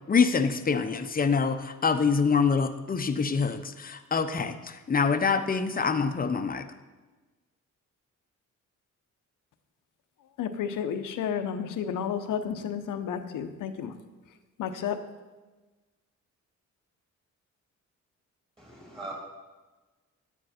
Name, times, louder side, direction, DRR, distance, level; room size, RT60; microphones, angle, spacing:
voice 1, 0.1-6.7, left 5 dB, 30° left, 9 dB, 0.7 m, -25 dB
voice 2, 10.4-13.9 14.6-15.0, left 8 dB, 90° left, 8 dB, 0.9 m, -31 dB
voice 3, 18.6-19.1, right 2 dB, 15° right, -2 dB, 3.1 m, -40 dB
10.5 x 9.3 x 4.3 m, 1.2 s
cardioid pair, 100°, 31 cm